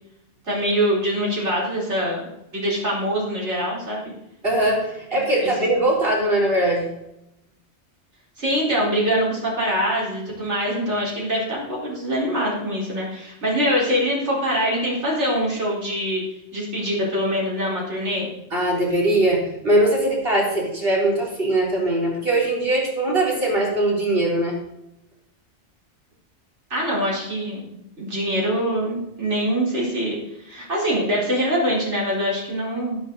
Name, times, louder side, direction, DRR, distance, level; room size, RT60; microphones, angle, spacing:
voice 1, 0.5-2.2 2.5-4.1 5.4-5.7 8.4-16.2 16.5-18.3 26.7-33.0, equal, 75° right, -4 dB, 4.9 m, -24 dB
voice 2, 4.4-6.9 18.5-24.6, right 1 dB, 55° right, -2 dB, 4.2 m, -21 dB
13.0 x 12.0 x 4.1 m, 0.87 s
omnidirectional pair, 1.2 m